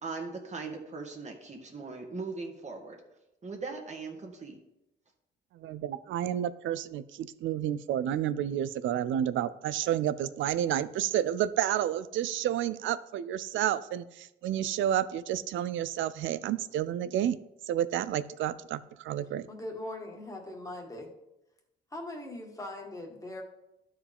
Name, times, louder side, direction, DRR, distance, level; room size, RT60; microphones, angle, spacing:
voice 1, 0.0-3.0 3.4-4.6, right 4 dB, 35° right, 1 dB, 1.8 m, -39 dB
voice 2, 5.5-17.4 17.7-19.5, right 11 dB, 80° right, 16 dB, 0.5 m, -30 dB
voice 3, 19.5-21.1 21.9-23.4, left 1 dB, 15° left, 0 dB, 1.8 m, -40 dB
12.5 x 4.7 x 3.5 m, 0.88 s
cardioid pair, 90°, 20 cm